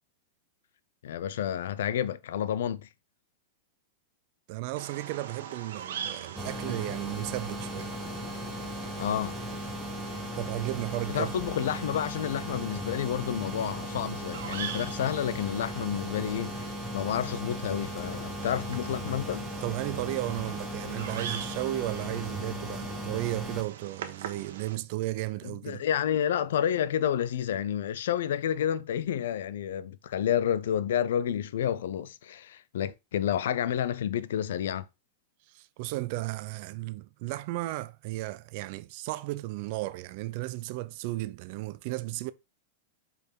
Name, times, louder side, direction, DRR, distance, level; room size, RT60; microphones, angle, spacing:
voice 1, 1.0-2.9 9.0-9.4 11.1-16.7 16.9-19.5 25.4-34.9, left 9 dB, 75° left, 0.6 m, -30 dB
voice 2, 4.5-8.0 10.4-11.5 19.6-25.8 35.5-42.3, right 18 dB, 50° right, 0.5 m, -34 dB
Bird vocalization bird call bird song, 4.8-24.8, right 8 dB, 80° right, 1.2 m, -43 dB
sound 1, 6.4-23.6, equal, ahead, 1.0 m, -37 dB
5.1 x 5.0 x 4.6 m
supercardioid pair, 145°, 0 cm